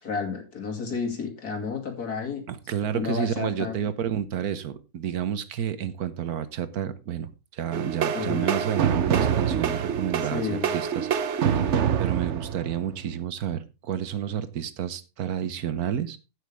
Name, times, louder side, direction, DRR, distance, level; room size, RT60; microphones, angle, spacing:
voice 1, 0.0-2.4 2.9-3.8 8.1-8.7 10.3-10.7, left 5 dB, 90° left, 4 dB, 3.0 m, -31 dB
voice 2, 2.5-11.7 12.0-16.2, right 9 dB, 80° right, 13 dB, 1.5 m, -30 dB
sound 1, 7.7-13.2, right 8 dB, 55° right, 1.0 m, -26 dB
16.0 x 6.4 x 3.4 m, 0.28 s
omnidirectional pair, 1.6 m